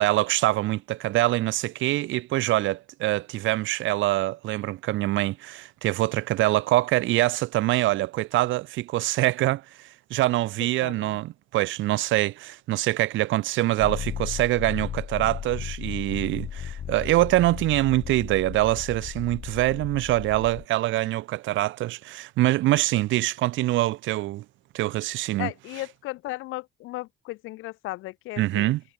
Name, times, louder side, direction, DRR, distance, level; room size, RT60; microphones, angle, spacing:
voice 1, 0.0-24.4 24.7-25.5 28.4-28.8, right 16 dB, 80° right, 0.5 m, -24 dB
voice 2, 10.8-11.2 25.4-28.7, left 19 dB, 90° left, 0.5 m, -35 dB
sound 1, 13.8-20.7, left 8 dB, 40° left, 0.6 m, -35 dB
cardioid pair, 90°, 20 cm